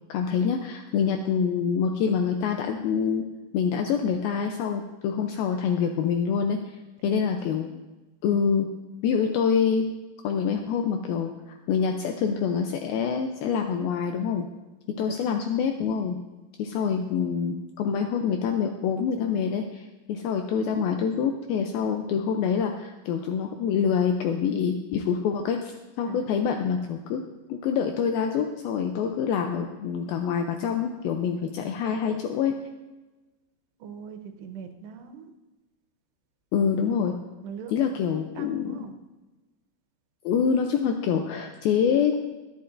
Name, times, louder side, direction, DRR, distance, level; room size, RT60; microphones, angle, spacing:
voice 1, 0.1-3.2 3.5-6.6 7.0-7.7 8.2-8.7 9.0-9.8 10.2-14.5 15.0-16.2 16.6-25.7 26.0-27.2 27.5-32.5 36.5-37.1 37.7-38.7 40.3-42.2, left 7 dB, 85° left, 4 dB, 2.1 m, -26 dB
voice 2, 7.0-7.6 16.8-16.9 26.1-26.3 33.8-35.3 37.4-37.8 38.2-38.9, right 7 dB, 80° right, 6 dB, 3.0 m, -41 dB
23.0 x 8.3 x 2.6 m, 1.2 s
omnidirectional pair, 5.1 m